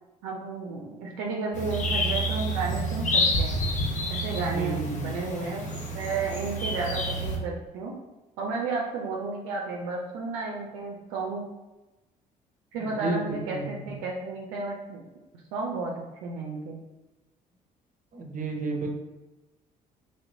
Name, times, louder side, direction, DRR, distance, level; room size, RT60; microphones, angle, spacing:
voice 1, 0.2-3.6 4.1-7.9 8.4-11.4 12.7-15.0 15.5-16.8, right 3 dB, 70° right, -1 dB, 0.5 m, -32 dB
sound 1, 1.5-7.4, equal, 35° left, 0.7 m, -28 dB
voice 2, 4.4-5.1 12.8-14.0 18.1-18.9, right 3 dB, 40° right, 2 dB, 0.7 m, -32 dB
3.1 x 2.8 x 2.7 m, 1.1 s
hypercardioid pair, 50°, 21 cm